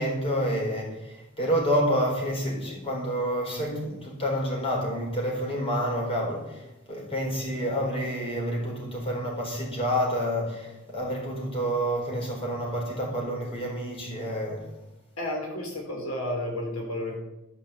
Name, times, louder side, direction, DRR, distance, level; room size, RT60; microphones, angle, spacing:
voice 1, 0.0-6.6 6.9-14.7, equal, 25° left, -2 dB, 4.2 m, -28 dB
voice 2, 15.2-17.1, left 1 dB, 85° left, 1 dB, 3.9 m, -32 dB
13.0 x 6.0 x 8.0 m, 0.97 s
head